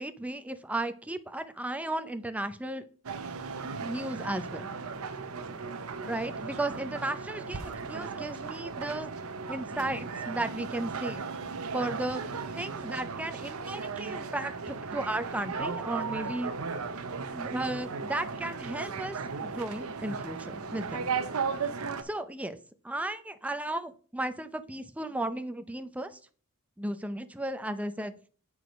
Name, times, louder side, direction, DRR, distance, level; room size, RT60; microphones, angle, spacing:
voice 1, 0.0-2.8 3.8-4.7 6.1-9.1 9.5-11.3 11.7-12.2 12.5-16.5 17.3-21.0 22.0-22.6 22.8-26.2 26.8-28.2, right 1 dB, 5° right, 10 dB, 0.5 m, -35 dB
sound 1, 3.0-22.0, right 5 dB, 90° right, 0.7 m, -36 dB
7.9 x 4.8 x 5.1 m, 0.42 s
head